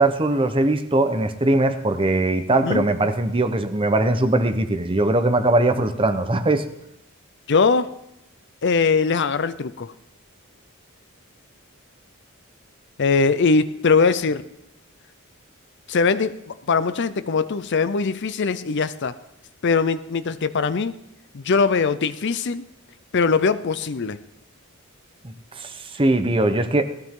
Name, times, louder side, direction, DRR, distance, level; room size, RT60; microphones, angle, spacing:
voice 1, 0.0-6.6 25.2-26.8, right 2 dB, 25° right, 9 dB, 0.9 m, -20 dB
voice 2, 7.5-8.0 8.6-9.9 13.0-14.5 15.9-19.2 19.6-21.0 21.3-22.7 23.1-24.2, left 4 dB, 55° left, 14 dB, 0.6 m, -21 dB
18.5 x 15.0 x 3.8 m, 0.82 s
head